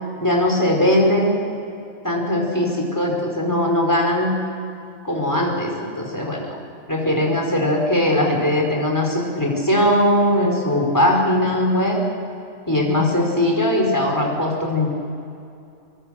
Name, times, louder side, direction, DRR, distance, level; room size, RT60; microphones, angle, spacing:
voice 1, 0.2-1.4 2.0-4.3 5.0-6.6 6.9-12.0 12.7-14.9, left 1 dB, 15° left, 0 dB, 5.0 m, -20 dB
25.0 x 23.5 x 6.6 m, 2.6 s
omnidirectional pair, 1.3 m